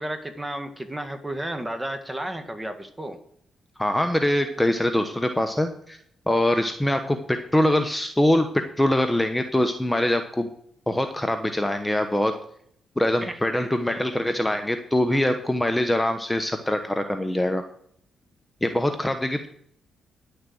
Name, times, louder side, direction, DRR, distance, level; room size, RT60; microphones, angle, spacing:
voice 1, 0.0-3.2 13.2-13.4 13.9-14.2, right 1 dB, 15° right, 8 dB, 1.8 m, -33 dB
voice 2, 3.8-6.0 6.3-10.5 10.9-12.3 13.0-17.6 18.6-19.5, left 1 dB, 10° left, 7 dB, 1.1 m, -23 dB
10.5 x 6.7 x 7.8 m, 0.67 s
cardioid pair, 65°, 0 cm